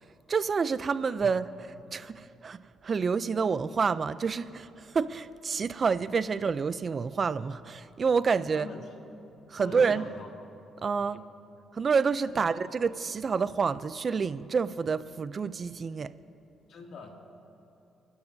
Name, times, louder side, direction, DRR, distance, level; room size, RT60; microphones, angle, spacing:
voice 1, 0.3-1.5 1.9-8.7 9.5-10.0 10.8-11.2 11.7-16.1, right 5 dB, 40° right, 0.5 m, -28 dB
voice 2, 8.5-8.9 9.6-10.3 11.0-11.3 12.3-12.8 16.7-17.1, left 3 dB, 65° left, 2.4 m, -44 dB
29.5 x 12.0 x 2.7 m
cardioid pair, 90°, 0 cm